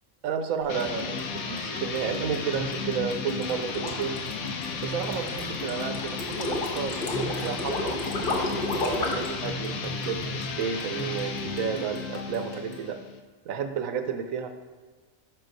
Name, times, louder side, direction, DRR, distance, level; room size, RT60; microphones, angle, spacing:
voice 1, 0.2-4.2 4.7-8.0 8.3-11.3 11.6-13.0 13.4-14.5, right 7 dB, 75° right, 7 dB, 1.0 m, -32 dB
sound 1, 0.6-12.9, equal, 20° left, 0.7 m, -40 dB
sound 2, 0.7-13.2, left 5 dB, 90° left, 1.1 m, -34 dB
sound 3, 3.3-9.3, left 2 dB, 45° left, 1.0 m, -31 dB
6.3 x 4.7 x 3.9 m, 1.4 s
omnidirectional pair, 1.4 m